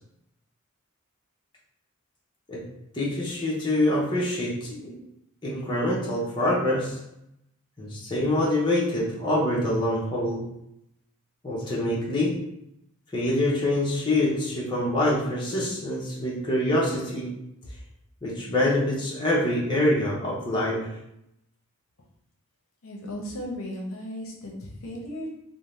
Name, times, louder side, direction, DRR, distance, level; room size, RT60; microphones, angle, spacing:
voice 1, 2.9-5.0 5.4-7.0 7.8-10.4 11.4-12.4 13.1-17.3 18.2-20.9, left 1 dB, 20° left, -6 dB, 0.6 m, -25 dB
voice 2, 22.8-25.3, equal, 70° left, -1 dB, 0.6 m, -36 dB
2.6 x 2.0 x 3.1 m, 0.81 s
head